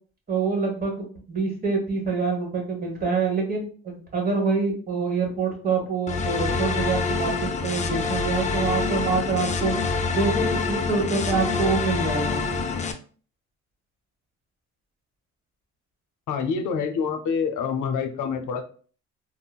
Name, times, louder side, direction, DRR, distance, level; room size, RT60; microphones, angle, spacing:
voice 1, 0.3-9.7 10.1-12.4, right 4 dB, 30° right, 0 dB, 1.2 m, -26 dB
sound 1, 6.1-12.9, left 4 dB, 25° left, 0.3 m, -26 dB
voice 2, 16.3-18.6, left 6 dB, 80° left, 7 dB, 0.6 m, -26 dB
3.7 x 2.0 x 2.3 m, 0.41 s
cardioid pair, 90°, 30 cm